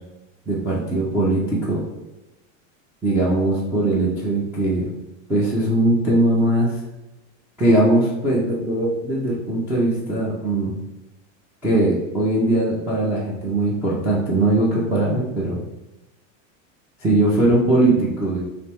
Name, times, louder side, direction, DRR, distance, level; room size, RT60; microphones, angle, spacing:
voice 1, 0.5-1.8 3.0-4.9 5.3-6.7 7.6-10.7 11.6-15.6 17.0-18.4, right 1 dB, 5° right, -9 dB, 0.4 m, -20 dB
3.4 x 2.9 x 4.2 m, 0.99 s
supercardioid pair, 160°, 39 cm